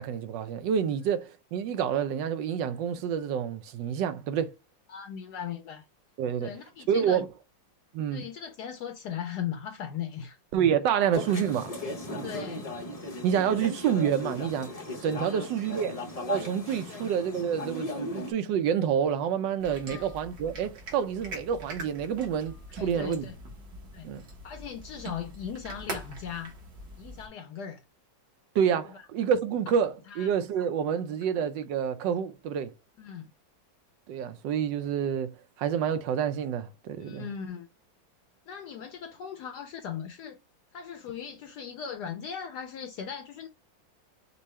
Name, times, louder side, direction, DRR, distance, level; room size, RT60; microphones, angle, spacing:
voice 1, 0.0-4.5 6.2-6.5 6.9-7.3 7.9-8.3 10.5-11.7 12.1-12.4 13.2-16.0 16.3-23.2 24.0-24.2 28.5-32.7 34.1-37.3, right 8 dB, 75° right, 1.2 m, -28 dB
voice 2, 4.9-5.9 6.4-7.2 8.1-10.4 12.2-12.7 15.3-15.9 16.9-17.1 19.9-20.1 22.8-23.3 23.9-24.1 24.4-26.5 27.0-27.8 28.9-29.1 30.1-30.3 33.0-33.3 37.0-37.7 38.5-40.4 40.7-43.5, left 8 dB, 75° left, 1.0 m, -38 dB
sound 1, 11.1-18.3, left 1 dB, 50° left, 0.4 m, -37 dB
sound 2, 19.6-27.3, right 1 dB, 60° right, 1.8 m, -43 dB
5.4 x 2.3 x 3.1 m
omnidirectional pair, 2.0 m